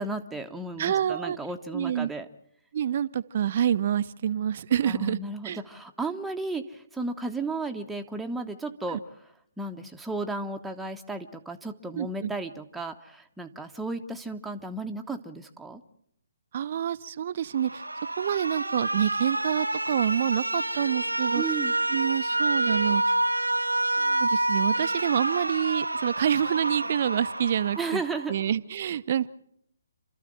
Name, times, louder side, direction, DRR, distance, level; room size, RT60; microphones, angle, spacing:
voice 1, 0.0-2.3 4.9-9.0 9.6-15.8 21.3-21.7 27.8-28.3, right 3 dB, 5° right, 4 dB, 1.1 m, -34 dB
voice 2, 0.8-1.4 1.7-2.1 2.7-5.6 8.9-9.0 12.0-12.3 16.5-17.8 18.2-21.4 21.9-23.2 24.0-28.0 28.3-29.3, right 9 dB, 40° right, 16 dB, 0.7 m, -27 dB
Alarm, 17.5-28.6, right 2 dB, 80° right, 0.8 m, -28 dB
29.0 x 13.5 x 7.5 m, 0.74 s
figure-of-eight pair, 135°, 0 cm